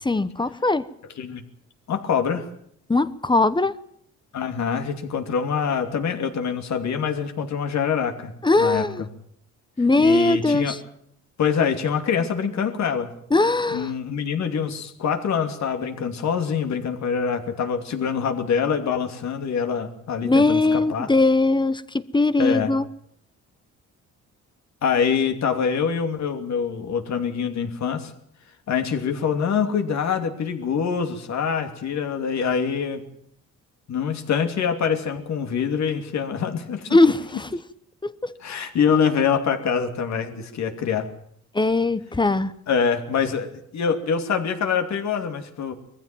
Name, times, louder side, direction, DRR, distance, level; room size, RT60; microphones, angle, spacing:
voice 1, 0.0-0.9 2.9-3.7 8.4-9.0 9.8-10.8 13.3-13.9 20.2-22.9 36.9-37.5 38.0-38.3 41.5-42.5, left 2 dB, 15° left, 14 dB, 1.0 m, -20 dB
voice 2, 1.9-2.5 4.3-9.1 10.0-10.7 11.4-13.1 13.7-21.1 22.4-22.7 24.8-28.1 28.7-33.0 33.9-37.0 38.4-41.1 42.7-45.7, left 6 dB, 65° left, 6 dB, 2.9 m, -25 dB
20.5 x 15.0 x 9.2 m, 0.69 s
cardioid pair, 90°, 30 cm